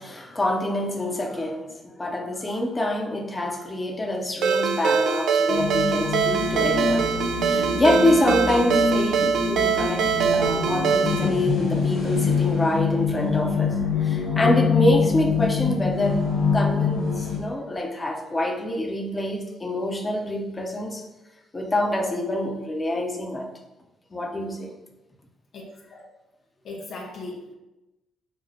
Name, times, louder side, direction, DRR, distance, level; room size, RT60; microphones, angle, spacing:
voice 1, 0.0-7.1 7.4-13.7 14.0-16.2 16.5-21.0 21.5-23.5 24.1-24.7, left 1 dB, 25° left, 0 dB, 0.9 m, -26 dB
Ringtone, 4.4-11.3, right 6 dB, 65° right, 0.4 m, -23 dB
sound 1, 5.5-17.4, left 5 dB, 75° left, 1.0 m, -25 dB
voice 2, 25.5-26.1 26.6-27.5, left 2 dB, 60° left, -1 dB, 0.7 m, -38 dB
6.8 x 2.3 x 2.8 m, 1.0 s
hypercardioid pair, 45°, 0 cm